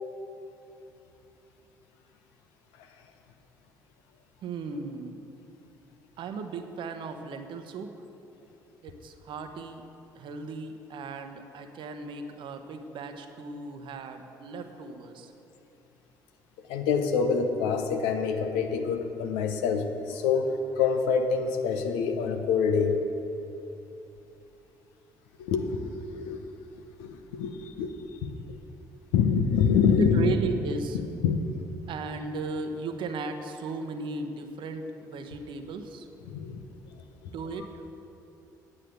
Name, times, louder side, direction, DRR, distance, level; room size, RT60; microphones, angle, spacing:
voice 1, 4.4-5.2 6.2-7.9 8.8-9.8 10.1-15.3 30.0-31.0 31.9-36.1 37.3-37.7, right 4 dB, 55° right, 7 dB, 1.0 m, -36 dB
voice 2, 16.7-20.5 20.8-22.9 25.4-26.5 27.0-27.9 28.2-28.3 29.1-30.3 31.2-31.4 36.3-36.6, left 6 dB, 65° left, 6 dB, 0.9 m, -26 dB
9.8 x 8.8 x 6.6 m, 2.9 s
figure-of-eight pair, 50°, 10 cm